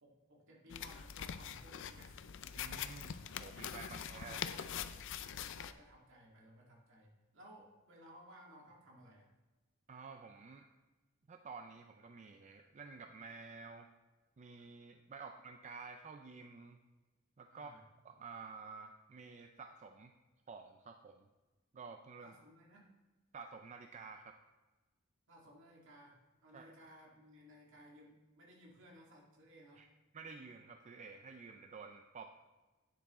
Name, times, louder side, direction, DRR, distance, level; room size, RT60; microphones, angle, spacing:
voice 1, 0.0-2.1 3.3-3.4 4.0-4.7 5.2-9.3 15.1-15.3 17.5-17.8 22.2-22.9 25.3-29.9, equal, 65° right, -2 dB, 2.1 m, -59 dB
sound 1, 0.7-5.7, left 8 dB, 60° left, 0.4 m, -44 dB
voice 2, 2.5-4.6 9.9-10.7 11.3-13.9 14.4-16.8 17.4-17.7 18.0-20.1 20.5-21.3 21.7-22.3 23.3-24.4 26.5-26.7 29.8-29.9 30.1-32.3, right 4 dB, 35° right, 6 dB, 0.4 m, -51 dB
9.5 x 7.0 x 3.7 m, 1.2 s
head